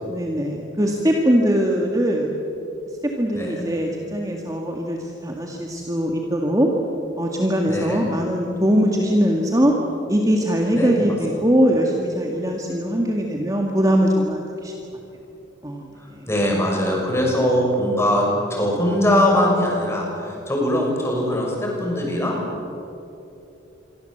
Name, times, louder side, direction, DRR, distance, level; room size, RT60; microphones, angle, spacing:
voice 1, 0.1-2.3 3.2-6.7 7.2-9.8 10.1-14.7 15.6-16.3, equal, 15° right, 0 dB, 2.0 m, -21 dB
voice 2, 3.3-3.7 7.7-8.0 10.7-11.0 16.3-22.3, left 1 dB, 15° left, -1 dB, 6.5 m, -21 dB
27.0 x 23.5 x 8.0 m, 2.9 s
head